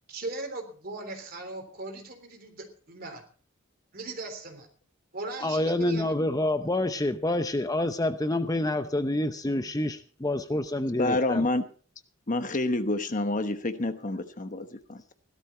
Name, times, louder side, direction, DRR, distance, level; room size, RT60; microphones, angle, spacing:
voice 1, 0.1-3.2 3.9-4.7 5.1-6.1, right 2 dB, 50° right, 5 dB, 3.5 m, -38 dB
voice 2, 5.4-11.5, left 1 dB, 20° left, 9 dB, 0.7 m, -27 dB
voice 3, 10.9-11.6 12.3-15.1, left 2 dB, 40° left, 9 dB, 1.1 m, -28 dB
16.5 x 12.5 x 4.4 m, 0.41 s
head